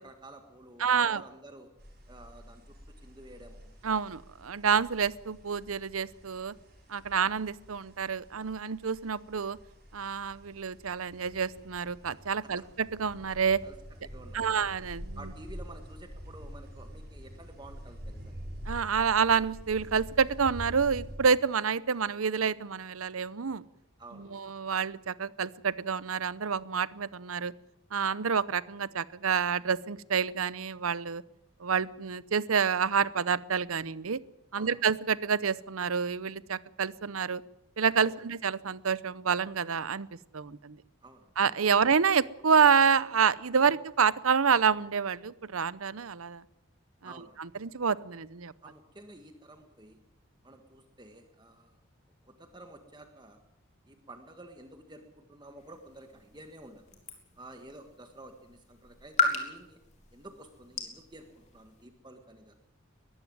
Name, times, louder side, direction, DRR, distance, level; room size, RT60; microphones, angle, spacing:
voice 1, 0.0-1.7 2.1-3.7 13.6-13.8 14.0-14.6 15.1-18.4 24.0-24.4 34.5-34.8 38.1-38.2 41.0-41.3 47.0-47.4 48.6-50.0 50.4-51.8 52.3-53.4 53.9-56.8 57.4-59.8 60.1-62.5, right 1 dB, 20° right, 6 dB, 1.6 m, -50 dB
voice 2, 0.8-1.2 3.8-6.6 6.9-9.6 9.9-13.6 14.3-15.2 18.7-23.6 24.1-27.5 27.9-31.2 31.6-34.2 34.5-37.4 37.8-40.1 40.3-40.8 41.4-46.4 47.0-47.1 47.4-48.5, right 6 dB, 90° right, 18 dB, 0.8 m, -28 dB
sound 1, 1.8-21.2, equal, 50° right, 7.8 m, -47 dB
sound 2, 55.6-61.9, left 4 dB, 35° left, 3.6 m, -36 dB
21.5 x 14.5 x 9.4 m, 0.85 s
head